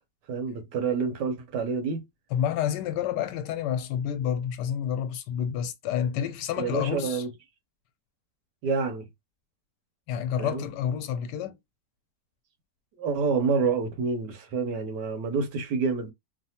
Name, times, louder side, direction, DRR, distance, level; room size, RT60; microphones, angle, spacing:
voice 1, 0.3-2.1 6.6-7.3 8.6-9.0 10.4-10.6 13.0-16.1, right 5 dB, 85° right, 1.4 m, -28 dB
voice 2, 2.3-7.2 10.1-11.6, left 9 dB, 85° left, 1.2 m, -29 dB
3.2 x 2.0 x 2.8 m
omnidirectional pair, 1.8 m